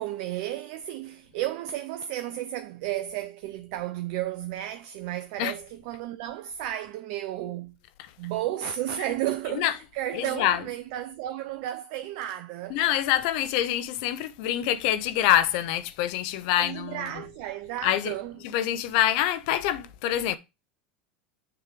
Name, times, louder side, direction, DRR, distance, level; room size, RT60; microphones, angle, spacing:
voice 1, 0.0-7.7 8.2-12.8 16.6-18.4, right 13 dB, 60° right, 0.5 m, -33 dB
voice 2, 10.1-10.6 12.7-17.2 17.8-18.1 18.4-20.4, left 12 dB, 65° left, 0.7 m, -26 dB
6.7 x 3.4 x 4.9 m
hypercardioid pair, 90°, 5 cm